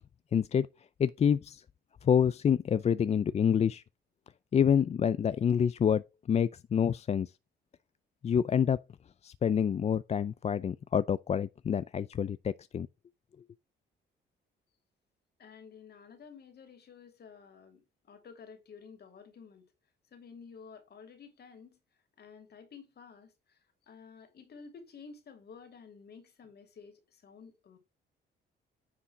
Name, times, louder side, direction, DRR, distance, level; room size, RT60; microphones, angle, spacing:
voice 1, 0.3-0.7 1.0-1.6 2.0-3.8 4.5-7.3 8.2-8.8 9.2-12.9, left 8 dB, 35° left, 0.4 m, -27 dB
voice 2, 15.4-19.7 20.1-21.8 22.2-27.8, left 5 dB, 55° left, 2.9 m, -52 dB
9.8 x 3.7 x 5.7 m
cardioid pair, 90°, 20 cm